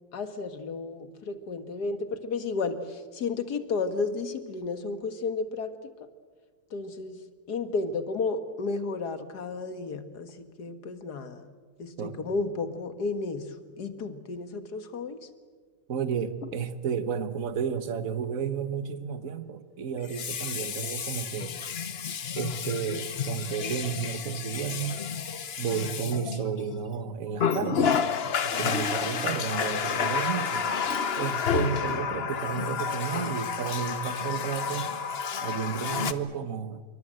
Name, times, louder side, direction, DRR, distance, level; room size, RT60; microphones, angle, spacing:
voice 1, 0.1-5.7 6.7-7.2 7.5-11.5 11.8-15.3 25.7-26.2, left 4 dB, 50° left, 9 dB, 2.1 m, -33 dB
voice 2, 15.9-21.6 22.3-25.0 25.6-28.0 28.4-30.7 31.2-34.9 35.4-36.8, right 7 dB, 45° right, 11 dB, 1.4 m, -32 dB
Water tap faucet, 16.4-16.6 20.0-26.8 27.4-36.1, left 6 dB, 65° left, 0.6 m, -30 dB
27.0 x 24.0 x 7.8 m, 1.5 s
omnidirectional pair, 2.4 m